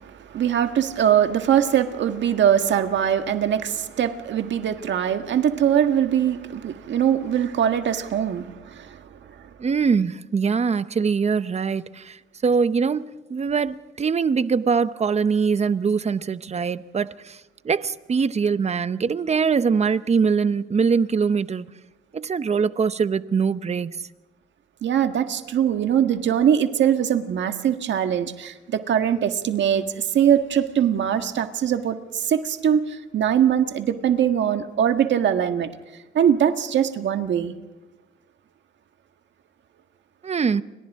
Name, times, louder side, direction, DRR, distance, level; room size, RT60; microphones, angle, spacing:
voice 1, 0.3-8.5 24.8-29.8 30.1-32.0 32.3-32.8 33.1-35.7 36.1-37.5, right 9 dB, 65° right, 1.7 m, -21 dB
voice 2, 9.6-17.4 17.6-21.6 22.1-24.0 40.2-40.6, right 5 dB, 35° right, 0.8 m, -23 dB
29.5 x 24.5 x 3.7 m
cardioid pair, 90°, 20 cm